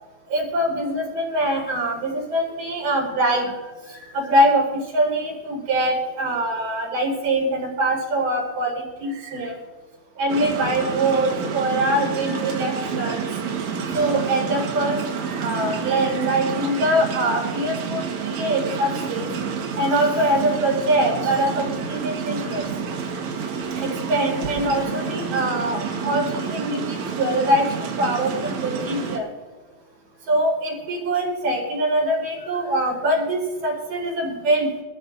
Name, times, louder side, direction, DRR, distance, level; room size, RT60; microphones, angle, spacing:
voice 1, 0.3-3.5 3.9-4.7 4.9-9.6 10.2-13.3 13.9-19.3 19.8-22.6 23.8-29.3 30.3-34.7, right 1 dB, 45° right, -1 dB, 6.2 m, -23 dB
sound 1, 10.3-29.2, right 6 dB, 70° right, 1.7 m, -29 dB
26.0 x 14.5 x 2.7 m, 1.3 s
omnidirectional pair, 5.5 m